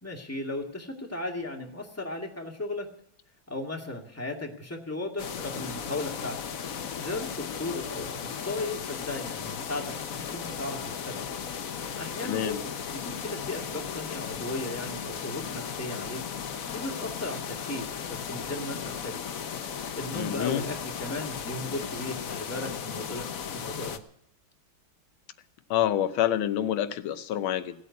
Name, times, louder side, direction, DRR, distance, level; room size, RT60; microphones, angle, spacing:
voice 1, 0.0-2.9 3.5-6.4 7.0-10.8 11.1-11.3 12.0-16.2 16.7-19.1 19.9-23.3 23.5-24.0, left 2 dB, 5° left, 0 dB, 2.1 m, -36 dB
sound 1, 5.2-24.0, left 7 dB, 50° left, 1.2 m, -36 dB
voice 2, 12.2-12.6 20.1-20.7 25.7-27.7, left 11 dB, 90° left, 11 dB, 1.7 m, -27 dB
17.0 x 8.5 x 9.4 m, 0.71 s
omnidirectional pair, 2.2 m